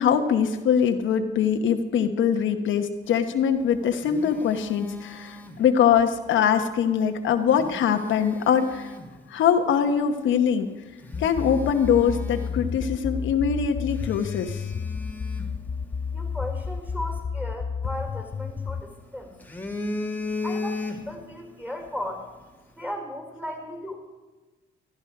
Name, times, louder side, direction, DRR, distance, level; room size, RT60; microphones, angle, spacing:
voice 1, 0.0-8.9 9.3-10.7 11.2-14.6, left 7 dB, 75° left, 6 dB, 1.0 m, -23 dB
Telephone, 3.5-6.1 7.3-9.2 9.8-10.0 10.5-10.6 11.0-13.0 13.3-13.4 13.9-16.3 17.9-18.8 19.2-21.4 21.7-21.9, left 2 dB, 10° left, 1.7 m, -37 dB
sound 1, 11.1-18.8, left 5 dB, 30° left, 0.6 m, -31 dB
voice 2, 16.1-19.3 20.4-22.2 22.7-24.0, equal, 10° right, 2 dB, 4.5 m, -36 dB
15.0 x 13.0 x 4.8 m, 1.2 s
cardioid pair, 90°, 20 cm